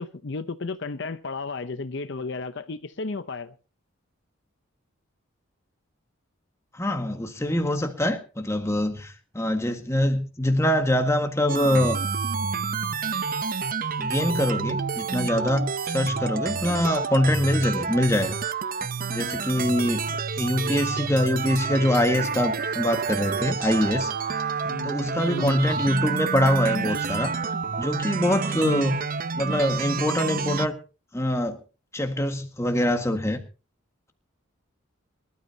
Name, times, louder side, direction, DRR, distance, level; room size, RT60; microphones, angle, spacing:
voice 1, 0.0-3.5 16.0-16.2 20.1-20.2 24.6-24.9 25.3-25.6 28.6-29.0, left 3 dB, 60° left, 0.7 m, -33 dB
voice 2, 6.8-12.0 14.0-18.4 19.1-20.0 20.4-24.1 24.8-27.3 27.8-29.0 29.4-30.8 31.1-31.6 31.9-33.4, left 1 dB, 15° left, 1.7 m, -24 dB
sound 1, 11.5-30.7, right 5 dB, 45° right, 0.7 m, -29 dB
24.5 x 12.5 x 2.8 m
head